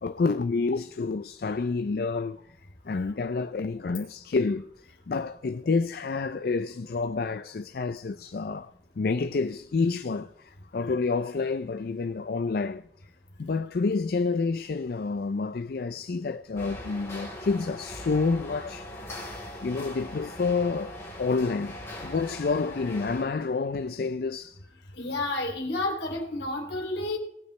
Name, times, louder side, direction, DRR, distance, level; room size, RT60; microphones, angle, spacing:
voice 1, 0.0-2.4 2.8-4.7 5.1-12.8 13.4-24.6, left 4 dB, 55° left, 0.4 m, -29 dB
sound 1, 16.5-23.2, left 1 dB, 15° left, 4.0 m, -40 dB
voice 2, 25.0-27.2, left 2 dB, 70° left, 2.8 m, -30 dB
18.5 x 9.5 x 3.2 m
head